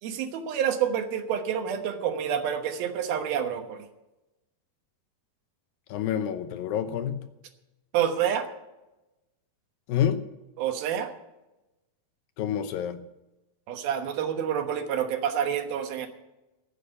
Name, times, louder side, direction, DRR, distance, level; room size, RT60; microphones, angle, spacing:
voice 1, 0.0-3.9 7.9-8.5 10.6-11.1 13.7-16.1, right 9 dB, 80° right, 6 dB, 3.1 m, -28 dB
voice 2, 5.9-7.2 9.9-10.2 12.4-13.1, left 9 dB, 75° left, 9 dB, 2.6 m, -28 dB
15.0 x 8.3 x 6.9 m, 0.98 s
omnidirectional pair, 4.3 m